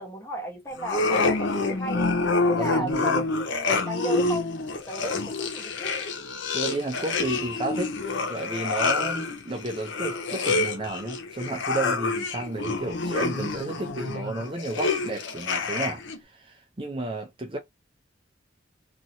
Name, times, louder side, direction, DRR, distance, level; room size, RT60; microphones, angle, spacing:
voice 1, 0.0-2.1 2.5-5.9, equal, 15° left, 1.0 m, -35 dB
sound 1, 0.8-16.2, left 3 dB, 80° left, 0.7 m, -27 dB
voice 2, 2.6-3.2 6.5-8.0 8.3-17.6, right 2 dB, 30° right, 0.6 m, -32 dB
2.9 x 2.7 x 2.6 m
head